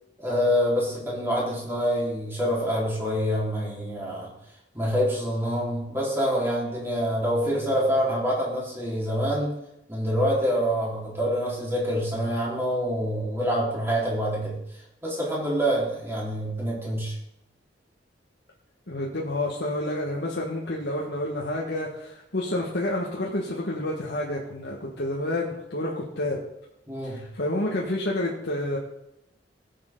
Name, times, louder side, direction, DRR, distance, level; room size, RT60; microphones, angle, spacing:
voice 1, 0.2-4.3 4.7-9.5 9.9-14.6 15.0-17.1 26.9-27.2, equal, 15° right, -6 dB, 4.3 m, -26 dB
voice 2, 18.9-26.4 27.0-28.8, left 1 dB, 70° left, -3 dB, 1.7 m, -29 dB
18.5 x 7.6 x 3.9 m, 0.85 s
head